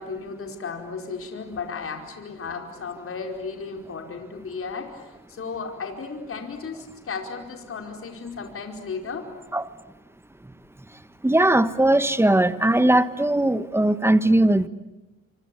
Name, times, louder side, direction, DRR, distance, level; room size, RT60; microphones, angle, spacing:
voice 1, 0.0-9.3, left 5 dB, 45° left, 4 dB, 4.9 m, -34 dB
voice 2, 11.2-14.7, right 1 dB, 10° right, 14 dB, 1.4 m, -19 dB
26.0 x 26.0 x 8.6 m, 1.0 s
cardioid pair, 90°, 30 cm